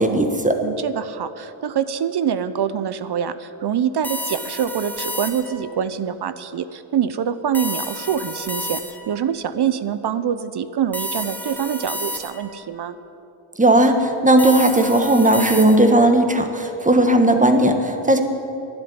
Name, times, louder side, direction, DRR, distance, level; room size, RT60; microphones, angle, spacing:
voice 1, 0.0-0.6 13.6-18.2, right 1 dB, 15° right, 5 dB, 1.5 m, -16 dB
voice 2, 0.6-13.0, right 8 dB, 55° right, 13 dB, 0.7 m, -25 dB
sound 1, 4.0-5.7 7.5-9.2 10.9-12.6 14.4-16.1, equal, 5° left, 1.5 m, -31 dB
12.0 x 10.0 x 9.6 m, 2.8 s
cardioid pair, 90°, 49 cm